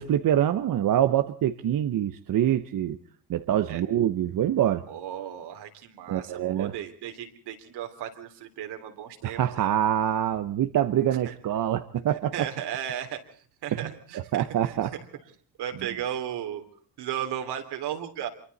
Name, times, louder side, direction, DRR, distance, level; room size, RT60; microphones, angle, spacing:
voice 1, 0.0-3.0 3.3-4.8 6.1-6.7 9.2-12.5 13.7-14.9, right 11 dB, 55° right, 10 dB, 1.1 m, -25 dB
voice 2, 4.9-9.7 12.3-13.2 13.6-14.8 15.6-16.6 17.0-18.3, right 10 dB, 80° right, 6 dB, 3.5 m, -35 dB
26.5 x 24.0 x 4.2 m, 0.44 s
cardioid pair, 115°, 40 cm